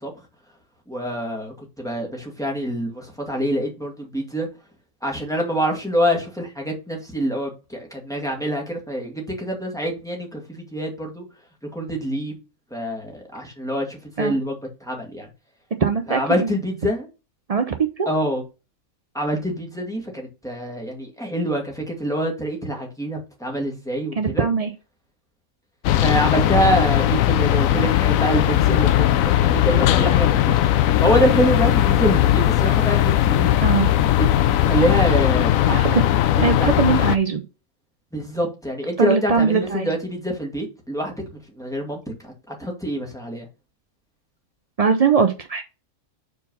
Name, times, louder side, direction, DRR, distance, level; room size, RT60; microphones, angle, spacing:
voice 1, 0.9-4.5 5.0-11.2 11.7-12.3 12.7-15.3 16.1-17.1 18.1-18.4 19.1-24.5 26.0-30.6 31.0-33.5 34.2-35.8 36.6-36.8 38.1-41.2 41.6-43.5, equal, ahead, 2.0 m, -25 dB
voice 2, 15.8-16.5 17.5-18.1 24.2-24.7 33.6-33.9 35.7-36.0 36.4-37.4 39.0-39.9 44.8-45.6, right 5 dB, 60° right, 0.3 m, -21 dB
sound 1, 25.8-37.2, left 12 dB, 75° left, 1.0 m, -18 dB
5.4 x 4.6 x 5.3 m
omnidirectional pair, 1.5 m